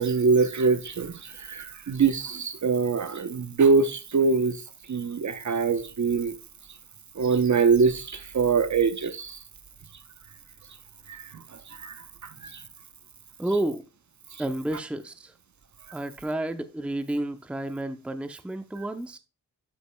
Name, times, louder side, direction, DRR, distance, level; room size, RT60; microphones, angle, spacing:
voice 1, 0.0-4.6 4.9-6.3 7.2-9.4 11.1-11.4 11.7-12.6, right 5 dB, 45° right, 0.8 m, -24 dB
voice 2, 13.4-13.8 14.4-15.3 15.9-19.2, right 1 dB, 5° right, 0.6 m, -31 dB
11.5 x 5.1 x 2.2 m
cardioid pair, 45°, 39 cm